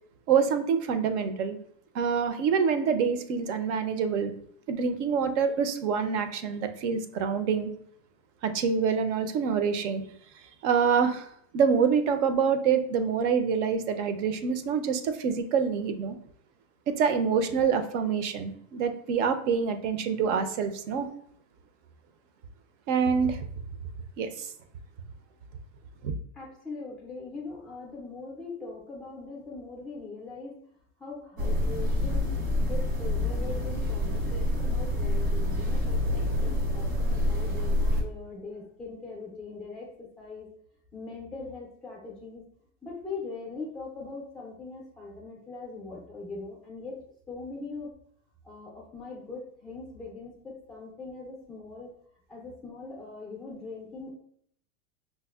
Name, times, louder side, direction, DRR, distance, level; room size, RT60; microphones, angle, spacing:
voice 1, 0.3-1.6 1.9-4.3 4.7-7.7 8.4-10.0 10.6-11.3 11.5-16.2 16.9-21.1 22.9-23.4 24.2-24.5 26.0-26.1, right 6 dB, 60° right, 8 dB, 0.5 m, -26 dB
voice 2, 26.3-30.6 31.0-40.5 40.9-42.4 42.8-47.0 47.3-47.9 48.4-51.9 52.3-54.1, left 3 dB, ahead, -2 dB, 0.3 m, -41 dB
sound 1, 31.4-38.0, left 1 dB, 90° right, 1.4 m, -27 dB
5.1 x 2.0 x 2.3 m, 0.64 s
supercardioid pair, 140°, 42 cm